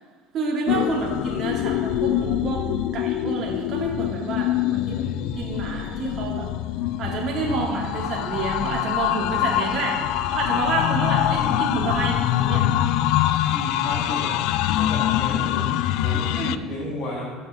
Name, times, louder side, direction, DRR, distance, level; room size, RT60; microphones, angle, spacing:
voice 1, 0.3-2.6 2.9-5.0 5.3-6.5 7.0-10.0 10.3-12.7 16.3-16.6, right 4 dB, 50° right, -2 dB, 2.8 m, -28 dB
sound 1, 0.7-16.6, left 13 dB, 70° left, 0.4 m, -24 dB
voice 2, 5.0-5.4 6.8-7.1 11.3-11.6 13.5-14.4 14.7-16.4 16.7-17.2, left 2 dB, 50° left, -6 dB, 2.2 m, -33 dB
13.5 x 6.7 x 3.8 m, 1.5 s
supercardioid pair, 100°, 0 cm